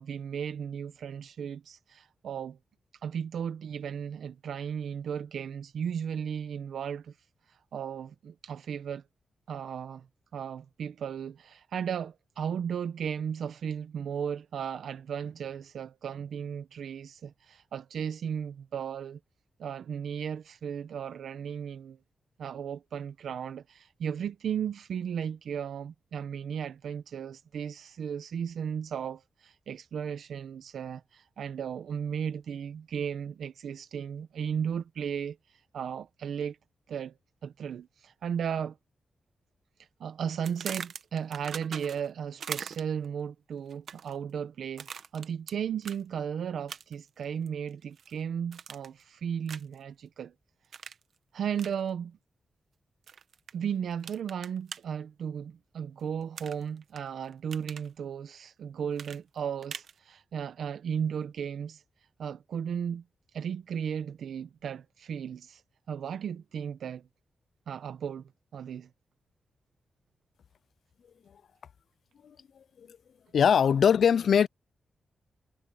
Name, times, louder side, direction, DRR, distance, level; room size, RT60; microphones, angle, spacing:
voice 1, 0.0-2.6 3.0-7.2 7.5-9.0 9.5-10.1 10.3-19.2 19.6-22.0 22.4-36.6 36.9-37.1 37.4-38.8 40.0-50.3 51.3-52.2 53.5-61.8 62.2-63.0 63.3-65.6 65.9-67.0 67.7-68.9, right 8 dB, 85° right, 0.7 m, -35 dB
sound 1, 40.4-42.1 42.4-43.1 43.7-44.2 44.8-45.5 45.8-46.0 46.7-47.1 47.5-48.1 48.5-49.0 49.5-49.8 50.7-51.0 51.6-51.7 53.1-53.5 54.0-54.8 56.4-57.0 57.3-57.9 59.0-59.9, right 7 dB, 65° right, 1.1 m, -41 dB
voice 2, 73.3-74.5, left 7 dB, 65° left, 0.3 m, -21 dB
wide cardioid pair, 165°, 0 cm